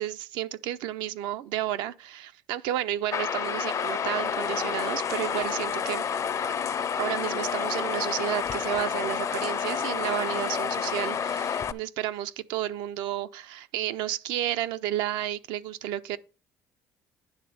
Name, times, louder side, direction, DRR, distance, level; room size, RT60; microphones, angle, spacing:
voice 1, 0.0-6.0 7.0-16.2, right 12 dB, 85° right, 0.5 m, -32 dB
sound 1, 3.1-11.7, left 7 dB, 45° left, 0.5 m, -29 dB
9.7 x 3.4 x 6.7 m
supercardioid pair, 75°, 8 cm